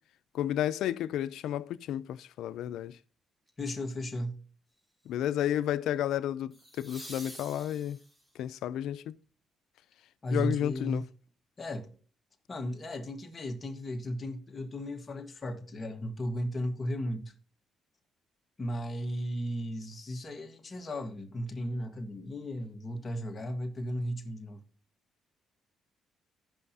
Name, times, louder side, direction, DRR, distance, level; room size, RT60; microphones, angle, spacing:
voice 1, 0.3-3.0 5.1-8.0 8.4-9.2 10.3-11.1, left 11 dB, 85° left, 0.4 m, -32 dB
sound 1, 3.5-3.8 6.5-8.4 11.3-11.4, right 1 dB, 20° right, 2.0 m, -48 dB
voice 2, 3.6-4.4 10.2-11.1 11.6-12.0 12.5-17.3 18.6-24.6, equal, 30° left, 1.5 m, -35 dB
15.5 x 5.6 x 2.8 m
cardioid pair, 100°, 0 cm